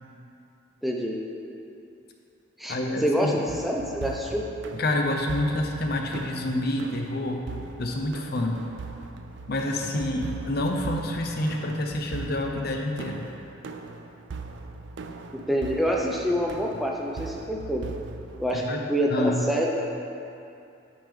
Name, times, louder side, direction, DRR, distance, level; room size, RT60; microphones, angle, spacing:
voice 1, 0.8-1.2 2.6-4.4 15.5-17.8 18.4-18.6 18.9-19.7, equal, ahead, -2 dB, 0.5 m, -26 dB
voice 2, 2.7-3.4 4.7-7.4 7.8-8.6 9.5-13.2 18.5-18.8 19.1-19.4, left 1 dB, 55° left, 2 dB, 0.6 m, -28 dB
sound 1, 3.5-18.5, right 3 dB, 65° right, 0.4 m, -40 dB
9.0 x 5.1 x 3.7 m, 2.7 s
head